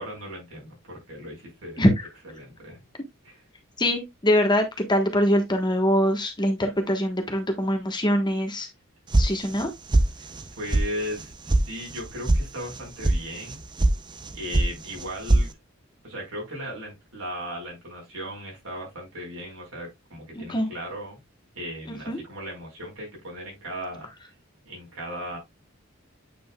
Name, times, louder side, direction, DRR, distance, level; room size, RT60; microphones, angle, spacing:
voice 1, 0.0-1.8 2.2-2.8 3.2-3.4 10.6-13.6 14.3-15.5 16.0-21.2 21.5-24.1 24.7-25.4, equal, 75° right, 4.9 m, -37 dB
voice 2, 3.8-8.7 9.2-9.7 20.3-20.7 21.9-22.2, equal, 20° left, 1.3 m, -23 dB
sound 1, 9.1-9.7 9.9-10.4 10.7-10.8 11.2-11.6 11.9-12.4 12.7-13.2 13.5-13.9 14.2-14.7 15.0-15.5, right 2 dB, 20° right, 0.6 m, -20 dB
8.6 x 5.2 x 2.3 m
head